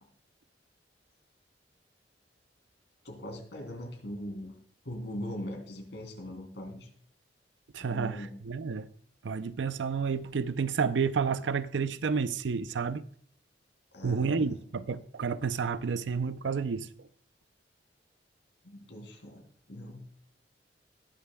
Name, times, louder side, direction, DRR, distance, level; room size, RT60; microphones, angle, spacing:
voice 1, 3.0-4.5 4.8-6.9 7.8-8.4 13.9-14.6 18.6-20.0, equal, 80° left, 3.0 m, -41 dB
voice 2, 7.7-8.9 9.2-13.0 14.0-16.9, right 5 dB, 85° right, 0.5 m, -30 dB
20.0 x 6.9 x 2.2 m
head